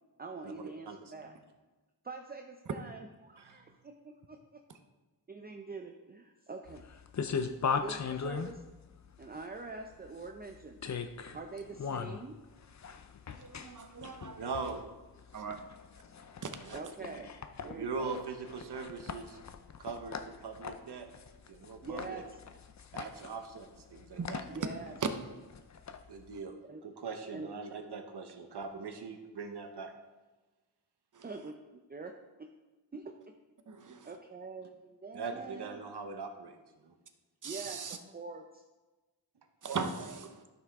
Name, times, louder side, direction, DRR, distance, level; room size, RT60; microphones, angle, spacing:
voice 1, 0.2-1.3 2.0-4.6 5.3-6.8 7.8-8.6 9.2-10.8 11.3-12.4 16.7-17.3 17.6-18.2 21.8-22.4 24.5-24.9 26.7-26.8 27.3-27.6 31.2-32.5 32.9-33.1 33.8-35.8 37.4-38.6, right 3 dB, 25° right, 4 dB, 0.5 m, -45 dB
sound 1, 6.7-26.4, left 6 dB, 45° left, 0.5 m, -40 dB
voice 2, 13.4-14.6 15.3-15.6 16.4-16.8 24.2-24.3 31.1-31.2 33.7-34.1 37.4-38.0 39.6-40.4, right 5 dB, 50° right, 7 dB, 0.9 m, -40 dB
voice 3, 14.4-14.9 16.6-17.1 17.6-19.4 19.8-21.1 21.5-22.2 22.9-24.6 26.1-26.6 26.8-29.9 35.1-36.9, right 4 dB, 75° right, 5 dB, 1.1 m, -41 dB
12.5 x 5.9 x 3.6 m, 1.2 s
wide cardioid pair, 125°, 40 cm